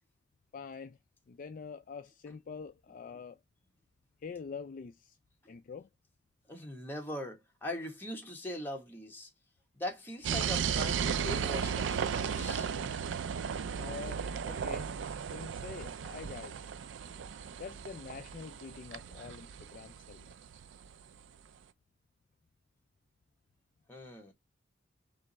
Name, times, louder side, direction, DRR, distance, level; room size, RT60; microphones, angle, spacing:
voice 1, 0.5-1.0 1.3-3.4 4.2-5.2 5.5-5.9 13.8-14.9 15.3-16.6 17.6-20.3, left 5 dB, 45° left, 0.3 m, -45 dB
voice 2, 6.5-9.3 9.8-12.7 23.9-24.3, left 1 dB, 10° left, 1.3 m, -41 dB
sound 1, 10.2-20.9, right 7 dB, 70° right, 0.4 m, -35 dB
3.4 x 3.1 x 3.9 m
head